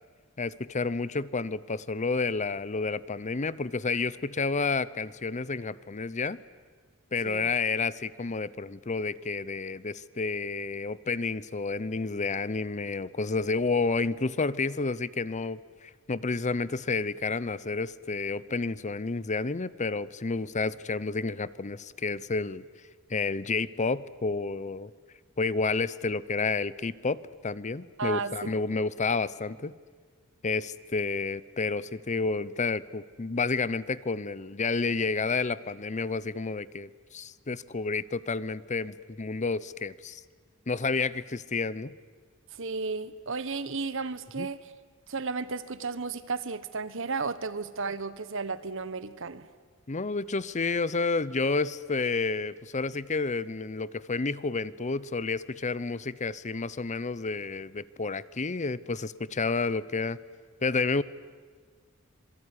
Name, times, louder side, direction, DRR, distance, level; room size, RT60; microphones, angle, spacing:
voice 1, 0.4-6.4 7.1-22.6 23.1-24.9 25.4-29.7 30.4-40.2 40.7-41.9 44.4-44.5 49.9-60.2 60.6-61.0, left 4 dB, 35° left, 0.8 m, -30 dB
voice 2, 28.0-28.5 42.6-44.6 45.1-49.5, right 4 dB, 65° right, 1.3 m, -33 dB
26.5 x 22.5 x 9.9 m
head